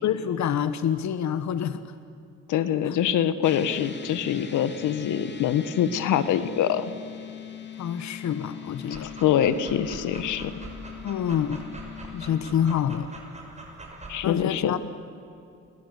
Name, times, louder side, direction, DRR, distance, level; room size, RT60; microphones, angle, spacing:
voice 1, 0.0-1.9 2.8-3.0 7.8-9.1 11.0-11.7 12.1-13.1 14.2-14.8, left 9 dB, 65° left, 12 dB, 1.4 m, -27 dB
voice 2, 2.5-6.9 8.9-10.5 14.1-14.8, left 10 dB, 85° left, 13 dB, 1.6 m, -25 dB
sound 1, 3.4-12.5, left 8 dB, 35° left, 3.1 m, -41 dB
Dog, 8.8-14.2, right 2 dB, 20° right, 6.5 m, -43 dB
29.0 x 23.5 x 8.4 m, 2.6 s
cardioid pair, 90°, 30 cm